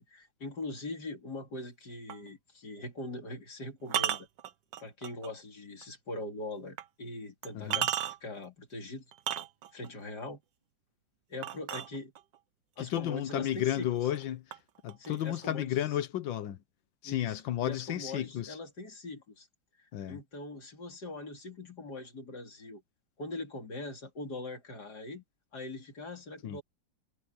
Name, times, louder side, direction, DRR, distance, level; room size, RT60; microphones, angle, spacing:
voice 1, 0.0-4.3 4.8-7.9 8.2-9.1 9.7-10.4 11.3-12.1 12.8-13.9 15.0-15.9 17.0-19.5 19.8-22.8 23.2-25.2 25.5-26.6, left 2 dB, 60° left, 4.0 m, -42 dB
sound 1, 2.1-2.3 3.9-5.3 5.8-5.9 6.8-6.9 7.4-8.4 9.1-9.9 11.4-12.4 13.3-13.4 13.8-14.2 14.5-15.5, right 10 dB, 75° right, 1.5 m, -34 dB
voice 2, 7.5-7.9 12.8-14.6 14.8-16.6 17.0-18.6 19.9-20.2 26.4-26.6, left 12 dB, 90° left, 1.7 m, -33 dB
omnidirectional pair, 2.0 m